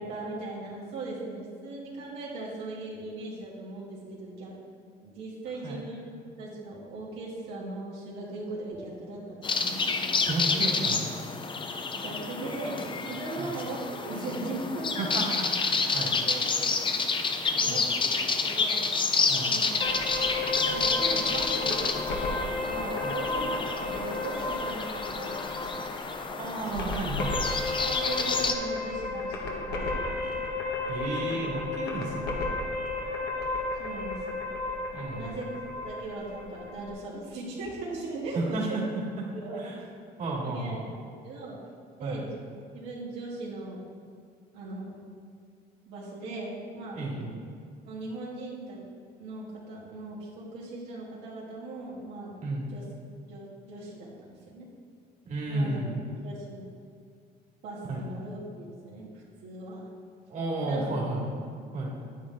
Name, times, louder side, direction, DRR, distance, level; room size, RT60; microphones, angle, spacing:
voice 1, 0.0-4.5 5.0-10.1 11.9-15.3 16.3-16.8 17.5-18.9 19.4-19.9 20.7-25.9 26.6-27.0 27.8-30.4 31.3-31.4 33.8-34.4 35.1-35.5 35.8-38.8 39.3-39.9 40.4-41.6 42.0-43.8 44.5-44.9 45.9-47.0 47.9-48.8 49.2-52.3 52.7-52.8 53.3-54.7 55.5-55.8 56.2-56.7 57.6-59.8 60.6-60.9, right 2 dB, 85° right, -6 dB, 2.5 m, -39 dB
sound 1, 9.4-28.5, left 4 dB, 30° left, 0.7 m, -29 dB
voice 2, 10.2-11.1 13.4-13.6 15.0-16.1 17.7-17.8 19.3-19.5 23.0-23.2 26.4-27.3 30.9-32.4 34.9-35.4 38.3-38.8 39.5-39.8 40.2-40.8 42.0-42.2 46.9-47.3 52.4-52.7 55.3-56.0 57.8-58.0 60.3-61.3 61.7-61.9, right 2 dB, 45° right, -4 dB, 2.3 m, -32 dB
sound 2, 19.8-36.9, left 2 dB, 70° left, 1.7 m, -33 dB
9.6 x 9.3 x 3.7 m, 2.1 s
cardioid pair, 110°, 17 cm